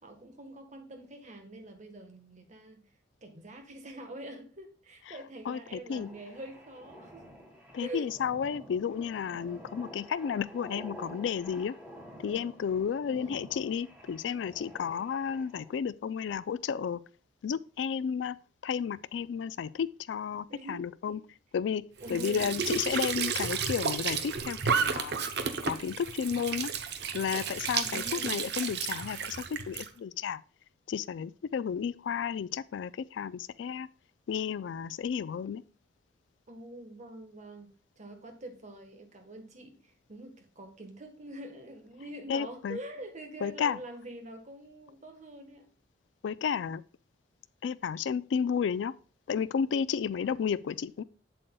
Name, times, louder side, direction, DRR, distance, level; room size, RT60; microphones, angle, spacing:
voice 1, 0.0-2.8 3.2-7.2 7.8-8.1 13.1-13.4 20.5-21.2 22.0-22.5 27.8-28.4 36.5-45.7 50.2-50.3, right 1 dB, 40° right, 1.3 m, -45 dB
voice 2, 5.5-6.1 7.7-11.7 12.2-17.0 17.4-18.4 18.6-21.2 21.5-21.8 22.1-25.1 25.6-26.7 27.1-30.4 30.9-33.9 34.3-35.6 42.3-42.8 43.4-43.8 46.2-46.8 47.6-48.9 49.3-51.0, left 7 dB, 80° left, 0.3 m, -32 dB
sound 1, 5.9-15.8, equal, 10° right, 1.5 m, -50 dB
Squeak / Sink (filling or washing) / Trickle dribble, 22.0-29.9, right 6 dB, 65° right, 0.7 m, -32 dB
7.8 x 7.7 x 2.2 m
head